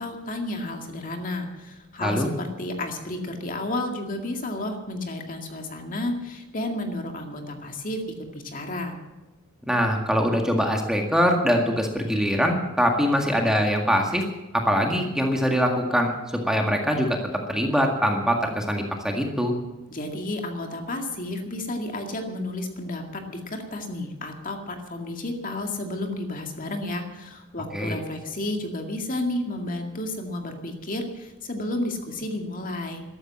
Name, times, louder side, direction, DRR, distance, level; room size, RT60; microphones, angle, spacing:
voice 1, 0.0-8.0 8.3-9.0 19.9-33.0, left 1 dB, 40° left, 3 dB, 2.1 m, -32 dB
voice 2, 9.6-14.2 14.5-16.1 16.5-17.2 17.5-19.5 27.7-28.0, equal, 5° right, 2 dB, 1.8 m, -23 dB
14.0 x 13.0 x 7.5 m, 1.1 s
head